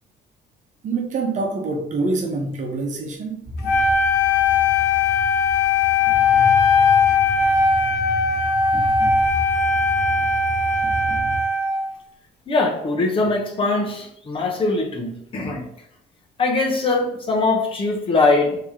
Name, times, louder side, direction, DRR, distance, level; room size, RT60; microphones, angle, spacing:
voice 1, 0.8-3.4, right 3 dB, 45° right, 0.9 m, -25 dB
sound 1, 3.4-11.4, left 1 dB, 5° right, 1.3 m, -33 dB
Wind instrument woodwind instrument, 3.6-11.9, left 4 dB, 85° left, 0.6 m, -19 dB
voice 2, 12.5-15.7 16.4-18.6, left 3 dB, 30° left, 0.8 m, -21 dB
3.1 x 2.9 x 3.6 m
cardioid pair, 110°, 17 cm